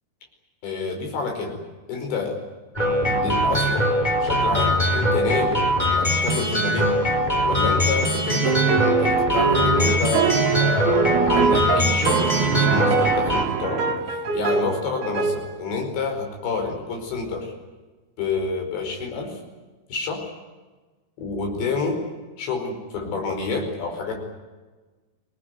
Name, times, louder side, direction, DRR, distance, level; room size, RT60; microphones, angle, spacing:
voice 1, 0.6-1.6 1.9-2.4 3.1-3.9 4.2-5.6 5.9-7.0 7.4-17.5 18.2-19.4 19.9-20.2 21.2-22.0 22.4-24.2, left 4 dB, 85° left, 3 dB, 7.3 m, -28 dB
sound 1, 2.7-13.4, equal, 10° left, 4.3 m, -21 dB
sound 2, 8.4-14.7 15.0-15.4, right 6 dB, 65° right, 4.2 m, -23 dB
26.5 x 20.0 x 9.5 m, 1.3 s
omnidirectional pair, 4.9 m